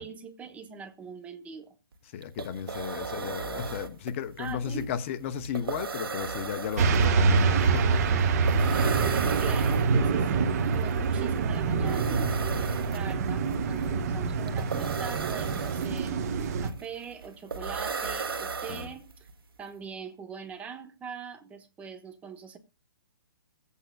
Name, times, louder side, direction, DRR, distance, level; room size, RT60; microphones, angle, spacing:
voice 1, 0.0-1.7 4.4-4.9 9.4-16.2 16.6-19.3 19.6-22.6, right 6 dB, 10° right, 0.8 m, -42 dB
sound 1, 1.9-2.0 2.2-19.3, right 5 dB, 85° right, 1.6 m, -37 dB
voice 2, 2.1-8.2 18.7-18.9, left 8 dB, 35° left, 0.8 m, -35 dB
sound 2, 6.8-16.7, right 5 dB, 45° right, 1.1 m, -25 dB
22.5 x 8.3 x 2.2 m
hypercardioid pair, 155°, 12 cm